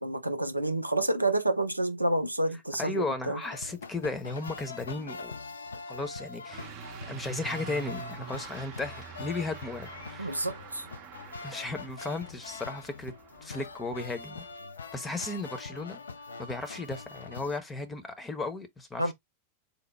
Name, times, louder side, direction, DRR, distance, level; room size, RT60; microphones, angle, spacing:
voice 1, 0.0-3.4 10.2-10.9 19.0-19.1, right 1 dB, 85° right, 0.5 m, -29 dB
voice 2, 2.8-5.3 5.9-6.7 7.1-10.4 11.4-13.1 13.4-14.4 14.9-16.0 16.4-19.1, left 3 dB, 15° left, 0.8 m, -35 dB
sound 1, 3.4-17.6, left 4 dB, 75° left, 0.4 m, -43 dB
Truck / Accelerating revving vroom, 6.5-14.5, right 9 dB, 40° right, 0.7 m, -46 dB
4.2 x 2.1 x 3.3 m
figure-of-eight pair, 90°, 0 cm